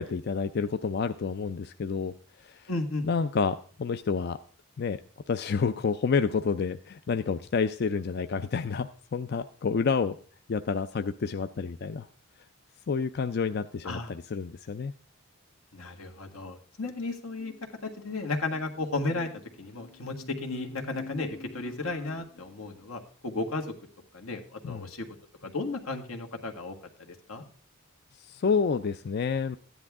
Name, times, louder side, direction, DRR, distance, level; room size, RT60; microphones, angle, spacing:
voice 1, 0.0-2.1 2.4-2.7 3.0-4.4 4.8-5.0 5.3-10.2 10.5-12.1 12.9-14.9 24.6-24.9 28.2-29.6, left 5 dB, 50° left, 10 dB, 0.4 m, -29 dB
voice 2, 2.7-3.1 13.8-14.1 15.7-23.7 24.1-25.1 25.4-27.4, left 2 dB, 85° left, 3 dB, 1.8 m, -34 dB
14.0 x 10.0 x 3.6 m, 0.43 s
head